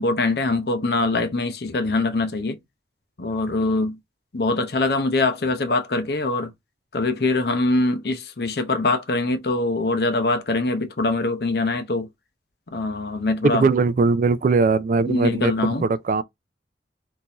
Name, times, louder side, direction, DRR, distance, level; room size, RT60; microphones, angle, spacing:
voice 1, 0.0-2.6 3.2-4.0 4.3-6.5 6.9-12.1 12.7-13.7 15.1-15.9, left 2 dB, 60° left, 0.7 m, -23 dB
voice 2, 13.5-15.5 15.8-16.2, right 4 dB, 45° right, 0.3 m, -20 dB
3.6 x 2.7 x 2.9 m
head